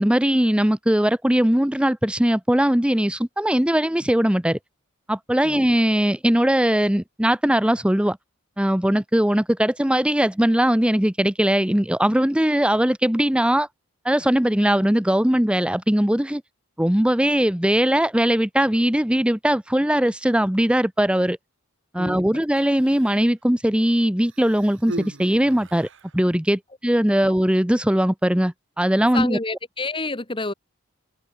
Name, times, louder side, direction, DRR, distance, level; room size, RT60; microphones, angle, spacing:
voice 1, 0.0-4.6 5.1-8.2 8.6-13.7 14.0-16.4 16.8-21.4 21.9-25.9 26.1-29.4, equal, 5° right, 0.8 m, -20 dB
Human voice, 22.4-23.3 24.2-26.2 27.1-27.2, right 2 dB, 60° right, 2.3 m, -39 dB
voice 2, 29.1-30.5, left 3 dB, 25° left, 2.1 m, -29 dB
open air
head